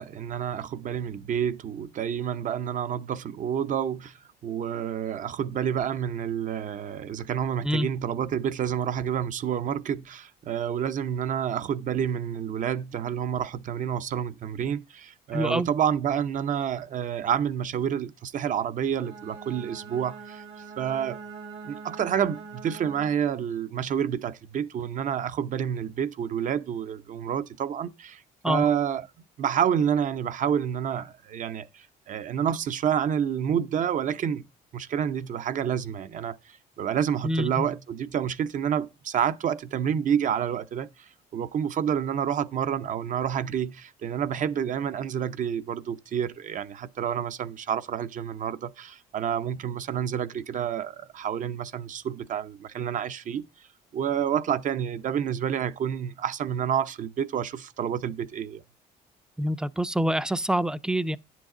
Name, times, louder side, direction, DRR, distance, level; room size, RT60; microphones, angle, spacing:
voice 1, 0.0-4.2 4.4-20.4 20.8-21.2 21.6-29.0 29.4-34.5 34.7-53.5 53.9-58.6, right 8 dB, 50° right, 0.7 m, -29 dB
voice 2, 15.3-15.7 28.4-28.7 37.2-37.7 59.4-61.2, equal, 5° right, 0.4 m, -26 dB
Bowed string instrument, 18.9-23.3, right 5 dB, 90° right, 3.4 m, -43 dB
10.0 x 7.6 x 3.8 m
cardioid pair, 110°, 17 cm